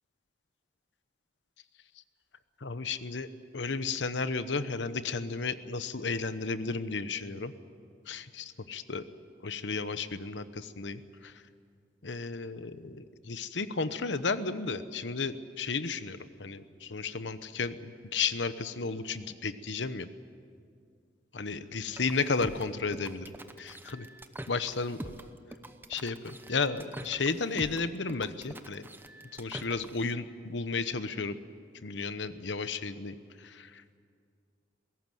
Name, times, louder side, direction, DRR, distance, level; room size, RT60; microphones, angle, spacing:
voice 1, 2.6-3.3 3.5-7.5 8.1-9.0 9.4-11.4 12.0-20.1 21.3-23.3 23.6-24.1 24.5-25.1 25.9-28.9 29.3-31.4 31.8-33.8, left 4 dB, 85° left, 12 dB, 1.0 m, -33 dB
sound 1, 21.9-30.1, right 1 dB, 10° right, 0.8 m, -45 dB
21.5 x 17.0 x 9.2 m, 2.2 s
head